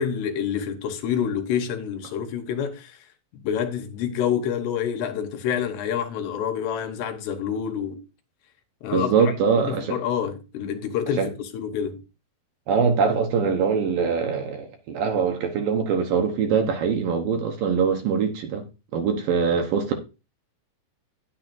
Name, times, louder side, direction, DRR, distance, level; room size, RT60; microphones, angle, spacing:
voice 1, 0.0-3.0 3.4-8.0 8.8-12.0, left 8 dB, 80° left, 3.2 m, -27 dB
voice 2, 8.9-10.0 11.2-11.3 12.7-18.7 18.9-19.9, right 6 dB, 70° right, 2.4 m, -23 dB
10.5 x 9.9 x 2.6 m
omnidirectional pair, 4.9 m